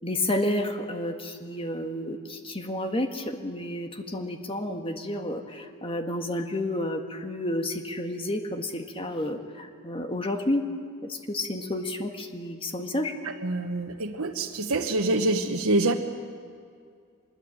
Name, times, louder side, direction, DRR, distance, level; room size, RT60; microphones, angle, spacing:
voice 1, 0.0-10.7 11.0-13.2, left 1 dB, 25° left, 5 dB, 1.7 m, -30 dB
voice 2, 13.4-15.9, right 2 dB, 85° right, 1 dB, 1.3 m, -25 dB
24.5 x 21.0 x 8.9 m, 2.3 s
head